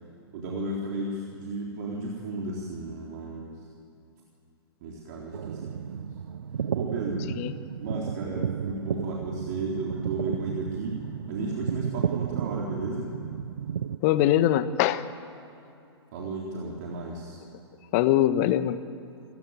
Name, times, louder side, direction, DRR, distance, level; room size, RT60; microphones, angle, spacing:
voice 1, 0.3-3.6 4.8-6.1 6.7-7.3 7.8-13.1 16.1-17.4, right 2 dB, 40° right, -2 dB, 3.8 m, -34 dB
sound 1, 5.3-14.0, right 8 dB, 60° right, 0.6 m, -33 dB
voice 2, 14.0-15.0 17.9-18.8, left 12 dB, 35° left, 13 dB, 1.2 m, -22 dB
28.0 x 16.0 x 9.1 m, 2.6 s
figure-of-eight pair, 115°, 14 cm